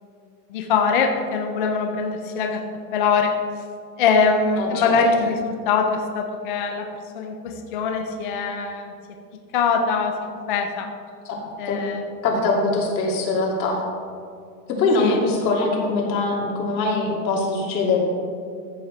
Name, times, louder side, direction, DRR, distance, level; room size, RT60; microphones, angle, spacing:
voice 1, 0.5-2.6 2.9-3.3 4.0-6.9 7.1-8.9 9.5-10.9 11.6-12.0 15.0-15.2, left 5 dB, 35° left, 3 dB, 0.5 m, -22 dB
voice 2, 4.6-5.0 11.3-11.4 11.7-11.8 12.2-13.8 14.8-18.0, left 3 dB, 90° left, -2 dB, 2.7 m, -22 dB
14.0 x 7.4 x 3.3 m, 2.3 s
supercardioid pair, 175°, 50 cm